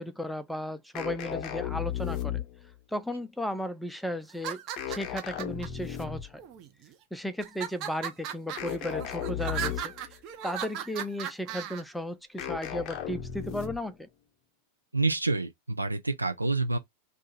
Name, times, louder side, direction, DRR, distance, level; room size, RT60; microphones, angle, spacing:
voice 1, 0.0-2.5 2.9-6.4 7.1-9.9 10.4-14.1, left 1 dB, ahead, 0.5 m, -35 dB
sound 1, 0.9-2.7 4.8-6.4 8.6-10.1 12.4-14.0, left 10 dB, 40° left, 0.7 m, -35 dB
sound 2, 4.3-5.7 6.4-6.9 7.4-11.8, right 10 dB, 40° right, 0.7 m, -37 dB
voice 2, 14.9-16.8, right 3 dB, 85° right, 0.4 m, -28 dB
2.6 x 2.4 x 4.0 m
figure-of-eight pair, 90°, 0 cm